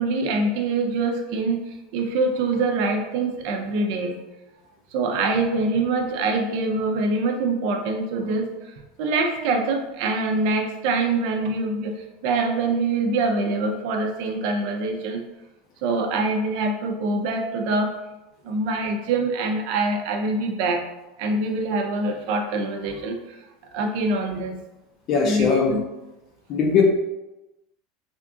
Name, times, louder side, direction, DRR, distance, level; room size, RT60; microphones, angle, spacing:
voice 1, 0.0-1.6 1.9-4.1 4.9-8.5 9.0-15.2 15.8-17.9 18.4-20.8 21.2-23.4 23.7-24.5 25.2-25.8, right 3 dB, 55° right, 3 dB, 0.6 m, -24 dB
voice 2, 25.1-25.8 26.5-26.8, left 5 dB, 35° left, 0 dB, 0.6 m, -20 dB
3.5 x 2.4 x 3.6 m, 0.99 s
supercardioid pair, 160°, 0 cm